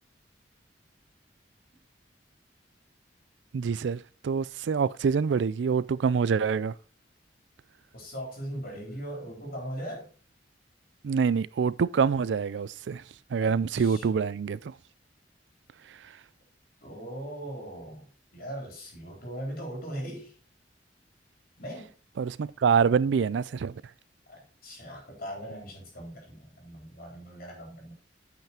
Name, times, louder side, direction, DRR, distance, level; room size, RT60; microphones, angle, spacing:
voice 1, 3.5-6.7 11.0-13.0 13.3-14.7 22.2-23.8, right 6 dB, 80° right, 0.4 m, -26 dB
voice 2, 7.9-10.1 13.4-14.1 16.8-20.3 21.6-21.9 24.3-27.9, equal, 55° left, 3.7 m, -39 dB
8.9 x 5.8 x 4.4 m
head